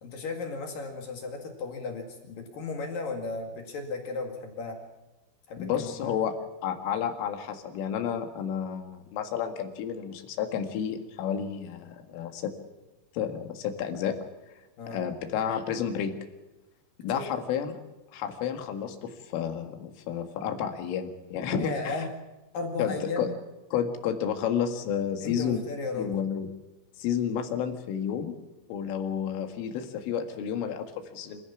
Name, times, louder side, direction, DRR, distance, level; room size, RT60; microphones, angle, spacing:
voice 1, 0.0-4.8 5.5-6.1 14.8-15.0 17.1-17.2 21.5-22.1 22.5-23.3 25.2-26.1, left 3 dB, 55° left, 3 dB, 3.2 m, -35 dB
voice 2, 5.6-12.5 13.1-14.2 14.9-16.1 17.0-17.8 18.1-22.0 22.8-23.3 23.7-25.6 25.9-26.5 27.0-28.4 28.7-31.4, left 8 dB, 80° left, 6 dB, 4.4 m, -31 dB
26.5 x 15.5 x 7.1 m, 1.1 s
omnidirectional pair, 5.8 m